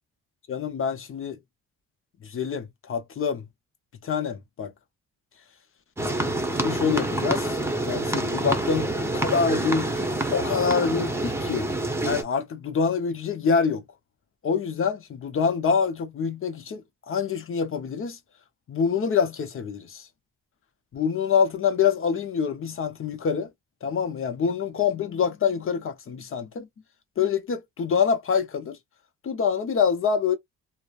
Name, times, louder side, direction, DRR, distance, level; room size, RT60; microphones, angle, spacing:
voice 1, 0.5-1.4 2.2-3.4 4.0-4.7 6.6-7.6 7.8-11.7 12.0-13.8 14.4-18.2 18.7-20.0 20.9-23.5 23.8-26.7 27.2-28.8 29.2-30.3, left 6 dB, 45° left, 0.8 m, -26 dB
sound 1, 6.0-12.2, right 1 dB, 10° right, 0.8 m, -27 dB
3.0 x 2.1 x 2.3 m
cardioid pair, 90°, 30 cm